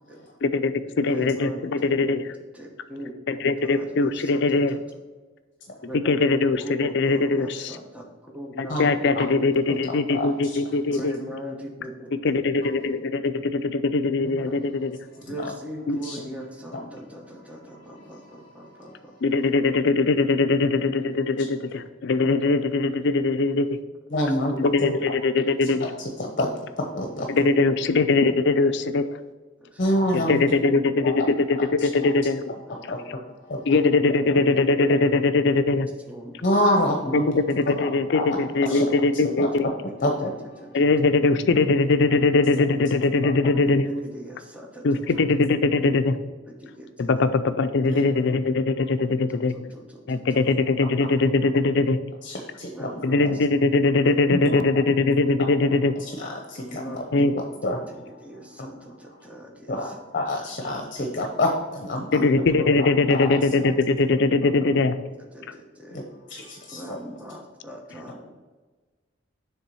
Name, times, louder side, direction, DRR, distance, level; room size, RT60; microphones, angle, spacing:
voice 1, 0.4-2.2 3.3-4.8 5.9-7.8 8.6-11.2 12.2-15.0 15.9-16.0 19.2-23.8 24.6-25.9 27.3-29.2 30.1-32.4 33.7-35.9 37.1-39.7 40.7-43.8 44.8-46.2 47.0-49.5 50.1-52.0 53.0-55.9 57.1-57.3 62.1-65.0, left 3 dB, 65° left, 10 dB, 0.5 m, -21 dB
voice 2, 1.0-2.3 2.5-4.8 5.8-6.1 6.5-8.9 9.1-9.3 10.9-12.5 14.4-14.5 15.2-19.1 29.6-29.8 30.6-30.9 32.7-32.8 33.0-33.1 34.0-35.2 36.0-36.5 38.3-38.8 39.1-40.3 40.6-40.8 41.6-41.7 43.5-45.2 46.6-47.1 47.9-48.3 48.7-48.8 49.3-50.5 52.7-53.3 56.7-57.3 58.1-60.0 62.0-62.7 64.6-64.7 65.3-66.0 66.7-68.3, equal, 5° right, 0 dB, 1.0 m, -40 dB
voice 3, 8.7-9.3 9.7-10.6 15.3-15.5 16.0-16.2 16.7-16.8 17.3-19.0 24.1-25.0 25.8-27.5 29.8-30.4 31.0-31.3 31.8-31.9 32.9-33.2 33.5-33.8 34.3-34.4 36.4-37.3 37.7-38.9 39.2-39.7 40.0-40.5 43.2-43.3 51.0-51.1 52.2-53.0 53.2-53.3 54.3-54.6 55.4-55.5 56.0-57.0 57.6-58.3 58.6-58.7 59.0-59.3 59.7-62.3 62.8-63.4 65.9-67.0, left 1 dB, 45° left, 2 dB, 0.9 m, -28 dB
7.1 x 3.5 x 6.2 m, 1.3 s
head